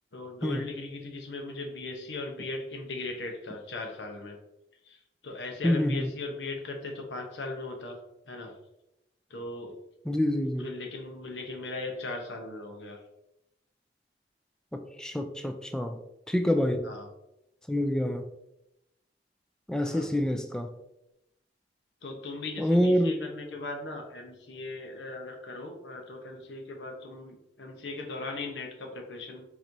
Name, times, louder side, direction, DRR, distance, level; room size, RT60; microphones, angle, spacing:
voice 1, 0.1-4.4 4.8-5.0 5.2-8.0 8.3-8.5 9.3-9.8 10.4-13.0 16.8-17.1 19.8-20.1 22.0-29.4, left 2 dB, 90° left, 3 dB, 0.9 m, -38 dB
voice 2, 5.6-6.1 10.1-10.7 14.7-16.0 16.3-16.9 17.7-18.2 19.7-20.7 22.6-23.2, equal, 5° left, 6 dB, 0.3 m, -26 dB
4.5 x 4.1 x 2.6 m, 0.86 s
head